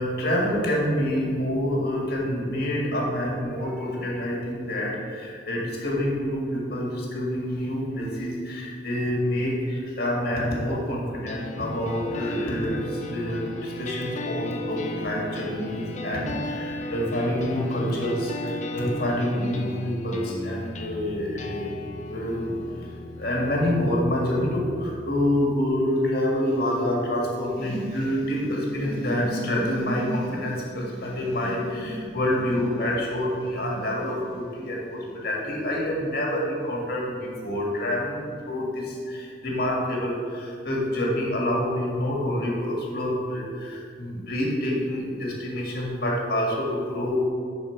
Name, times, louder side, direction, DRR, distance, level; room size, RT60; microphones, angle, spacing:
voice 1, 0.0-21.7 22.1-47.3, left 1 dB, 55° left, -3 dB, 1.8 m, -27 dB
sound 1, 11.3-25.2, left 2 dB, 40° left, 0.7 m, -36 dB
10.0 x 4.4 x 4.6 m, 2.2 s
head